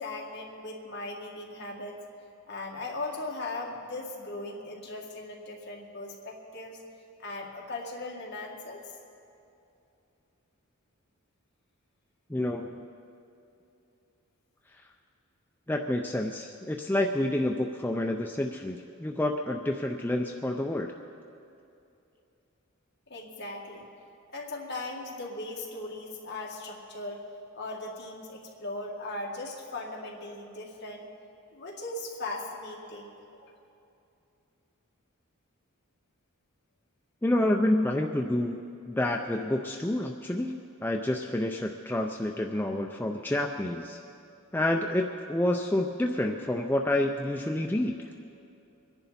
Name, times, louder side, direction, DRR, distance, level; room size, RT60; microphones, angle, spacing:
voice 1, 0.0-2.0 2.5-6.8 7.2-8.8 23.1-23.9 24.3-27.3 27.5-31.1 31.5-33.1 33.4-33.5, left 2 dB, 50° left, -1 dB, 2.0 m, -38 dB
voice 2, 12.3-12.7 14.7-14.9 15.7-21.0 37.2-44.0 44.5-48.1, left 1 dB, 10° left, 2 dB, 0.4 m, -29 dB
24.0 x 10.5 x 4.2 m, 2.7 s
head